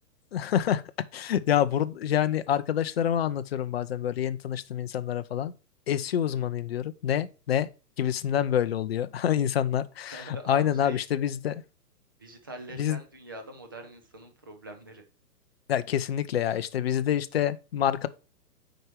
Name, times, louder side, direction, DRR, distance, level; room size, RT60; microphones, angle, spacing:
voice 1, 0.3-0.8 1.1-5.5 5.9-7.7 8.0-11.6 12.8-13.0 15.7-18.1, left 10 dB, 40° left, 0.6 m, -27 dB
voice 2, 10.1-11.0 12.2-15.0, right 1 dB, 15° right, 0.5 m, -43 dB
7.8 x 4.9 x 4.4 m
hypercardioid pair, 160°, 49 cm